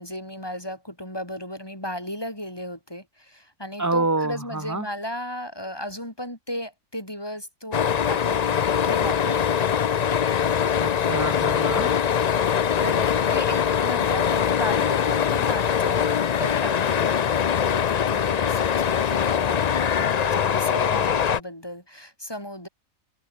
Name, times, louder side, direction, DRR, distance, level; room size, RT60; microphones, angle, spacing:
voice 1, 0.0-9.9 12.8-22.7, equal, 15° left, 6.9 m, -35 dB
voice 2, 3.8-4.9 10.8-11.9, right 2 dB, 15° right, 1.6 m, -27 dB
sound 1, 7.7-21.4, left 8 dB, 55° left, 0.4 m, -22 dB
open air
omnidirectional pair, 1.4 m